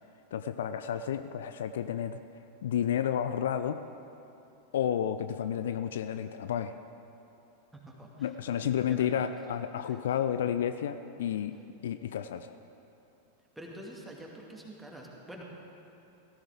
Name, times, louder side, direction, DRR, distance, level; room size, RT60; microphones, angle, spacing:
voice 1, 0.3-2.2 2.6-3.8 4.7-6.7 8.2-11.6 11.8-12.5, left 9 dB, 60° left, 10 dB, 0.4 m, -31 dB
voice 2, 7.7-8.3 8.6-9.5 9.9-10.0 13.6-15.4, right 1 dB, 5° right, -2 dB, 2.2 m, -47 dB
17.0 x 14.0 x 3.8 m, 2.8 s
figure-of-eight pair, 90°, 0 cm